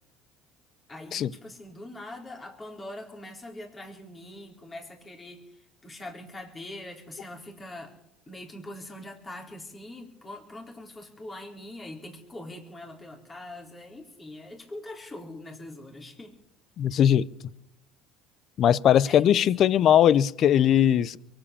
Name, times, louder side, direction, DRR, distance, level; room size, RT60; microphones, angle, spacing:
voice 1, 0.9-7.9 8.3-16.3 16.9-17.0 19.1-19.8, left 1 dB, 25° left, 4.3 m, -43 dB
voice 2, 16.8-17.3 18.6-21.2, left 10 dB, 55° left, 0.6 m, -20 dB
23.0 x 8.9 x 7.1 m
supercardioid pair, 85°, 0 cm